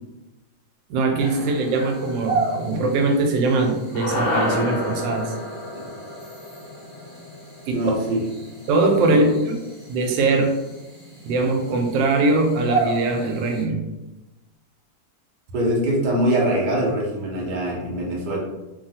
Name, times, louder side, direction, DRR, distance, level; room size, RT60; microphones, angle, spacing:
voice 1, 0.9-5.3 7.7-7.8 8.7-9.6 9.9-10.5 11.2-13.8, right 3 dB, 90° right, 3 dB, 1.2 m, -21 dB
sound 1, 1.2-13.6, right 3 dB, 25° left, 1.0 m, -34 dB
sound 2, 3.9-8.4, left 1 dB, 65° left, 1.0 m, -29 dB
voice 2, 7.7-8.2 9.1-9.2 15.5-18.4, right 1 dB, 55° right, -3 dB, 0.5 m, -23 dB
3.0 x 2.4 x 2.7 m, 1.0 s
omnidirectional pair, 1.9 m